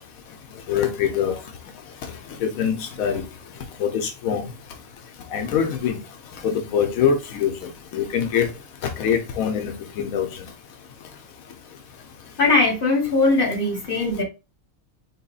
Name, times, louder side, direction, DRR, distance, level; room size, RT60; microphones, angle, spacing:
voice 1, 0.7-1.4 2.4-3.2 3.8-4.4 5.3-6.0 6.4-8.5 8.8-10.5, left 7 dB, 90° left, 1.1 m, -24 dB
voice 2, 12.4-14.2, left 3 dB, 40° left, 1.4 m, -20 dB
4.1 x 3.0 x 2.3 m
omnidirectional pair, 1.4 m